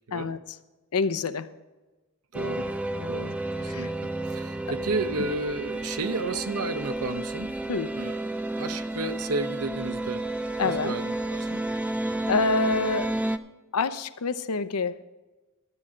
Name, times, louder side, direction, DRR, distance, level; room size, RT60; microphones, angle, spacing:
voice 1, 0.1-0.6 0.9-1.5 3.0-3.2 3.7-3.9 4.6-4.7 5.2-5.3 7.7-7.9 10.6-11.0 12.3-13.1 13.7-15.1, left 4 dB, 85° left, 12 dB, 0.7 m, -27 dB
sound 1, 2.3-13.4, right 1 dB, 5° right, 0.4 m, -31 dB
voice 2, 2.3-2.7 3.1-7.5 7.9-8.2 8.6-10.2 10.8-11.6, right 3 dB, 75° right, 10 dB, 0.8 m, -32 dB
12.5 x 8.6 x 5.1 m, 1.2 s
head